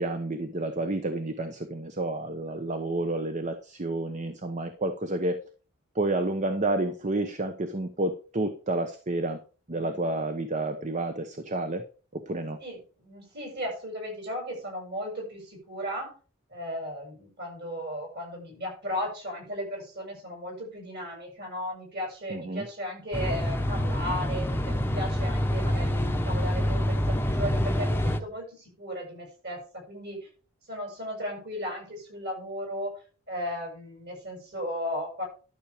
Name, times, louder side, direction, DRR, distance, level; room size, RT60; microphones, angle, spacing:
voice 1, 0.0-5.4 5.9-9.4 9.7-11.8 12.1-12.6 22.3-22.6, right 2 dB, 35° right, 8 dB, 1.0 m, -30 dB
voice 2, 12.6-16.1 16.5-30.3 30.7-32.9 33.3-35.3, equal, 50° right, 1 dB, 7.4 m, -36 dB
sound 1, 23.1-28.2, equal, 10° left, 1.0 m, -26 dB
12.0 x 7.1 x 5.0 m, 0.37 s
head